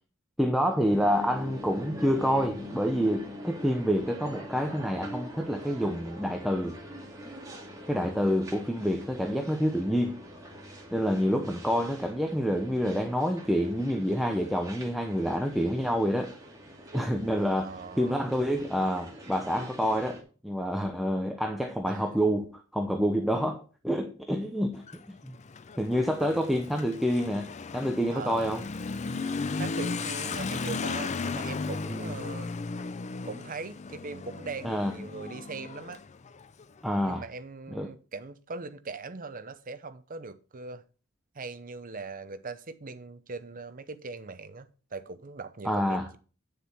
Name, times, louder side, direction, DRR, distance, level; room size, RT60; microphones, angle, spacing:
voice 1, 0.4-6.8 7.9-10.2 10.9-16.3 16.9-25.3 25.8-28.6 31.9-32.1 34.6-34.9 36.8-37.2 37.7-37.9 45.6-46.1, equal, ahead, 0.8 m, -28 dB
sound 1, 0.9-20.2, equal, 15° right, 2.3 m, -44 dB
voice 2, 17.5-18.2 21.9-22.1 26.2-26.4 28.1-28.5 29.5-32.5 33.2-36.0 37.1-40.8 41.3-46.2, right 4 dB, 40° right, 0.8 m, -40 dB
Motorcycle / Accelerating revving vroom, 24.7-37.1, left 4 dB, 35° left, 0.5 m, -36 dB
9.6 x 6.8 x 4.3 m
head